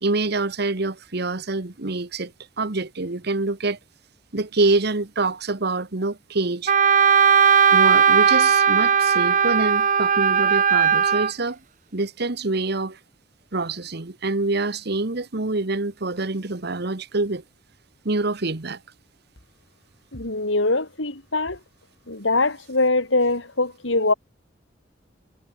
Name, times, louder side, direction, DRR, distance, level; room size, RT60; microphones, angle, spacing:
voice 1, 0.0-3.8 4.3-6.7 7.7-11.6 11.9-13.0 13.5-17.4 18.0-18.8, right 2 dB, 60° right, 1.4 m, -26 dB
Wind instrument woodwind instrument, 6.7-11.3, right 7 dB, 45° right, 1.1 m, -17 dB
voice 2, 20.1-21.6 22.1-24.1, left 2 dB, 90° left, 4.2 m, -22 dB
head